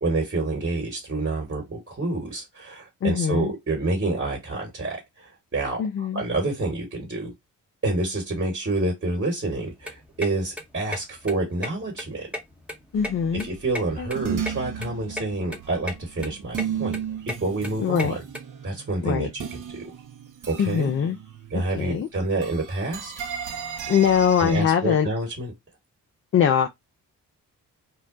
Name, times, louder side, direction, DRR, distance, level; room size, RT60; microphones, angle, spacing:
voice 1, 0.0-7.3 7.8-12.3 13.3-17.0 17.3-18.2 18.6-19.9 20.5-20.9 21.5-23.1 24.4-25.5, right 2 dB, 30° right, 1.4 m, -28 dB
voice 2, 3.0-3.5 5.8-6.2 12.9-13.5 14.0-14.1 17.8-18.2 19.0-19.3 20.6-21.2 21.5-22.1 23.9-25.1 26.3-26.7, left 8 dB, 30° left, 0.4 m, -22 dB
sound 1, 9.6-18.4, left 1 dB, 5° right, 0.9 m, -36 dB
sound 2, 12.9-22.0 22.3-24.6, right 8 dB, 45° right, 0.8 m, -35 dB
2.2 x 2.1 x 3.7 m
hypercardioid pair, 40°, 44 cm